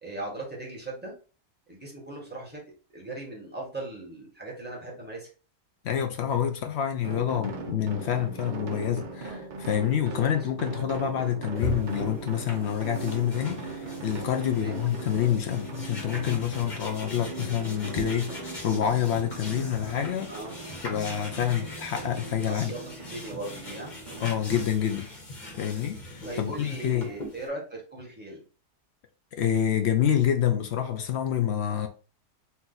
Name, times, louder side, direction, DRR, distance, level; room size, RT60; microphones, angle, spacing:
voice 1, 0.0-1.1 1.7-2.6 2.9-5.3 9.9-10.3 14.5-14.8 20.3-20.6 22.4-24.0 26.2-28.4, right 2 dB, 5° right, 1.4 m, -38 dB
voice 2, 5.8-20.3 20.8-22.7 24.2-25.1 25.6-27.1 29.3-31.9, left 9 dB, 75° left, 0.6 m, -27 dB
sound 1, 7.0-24.3, right 3 dB, 75° right, 0.4 m, -39 dB
sound 2, 11.5-27.5, left 1 dB, 30° left, 1.2 m, -40 dB
4.3 x 2.6 x 3.9 m
omnidirectional pair, 1.8 m